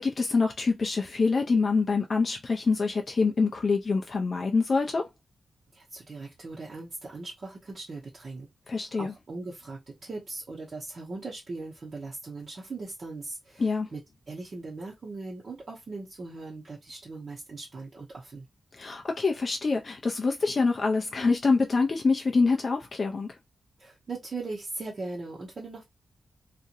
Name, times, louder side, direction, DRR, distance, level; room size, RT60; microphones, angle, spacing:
voice 1, 0.0-5.1 8.7-9.1 13.6-13.9 18.7-23.4, left 4 dB, 40° left, 0.5 m, -25 dB
voice 2, 5.7-13.6 13.9-14.0 14.3-18.5 23.8-25.8, right 3 dB, 45° right, 0.9 m, -39 dB
2.9 x 2.5 x 2.6 m
wide cardioid pair, 125°, 0 cm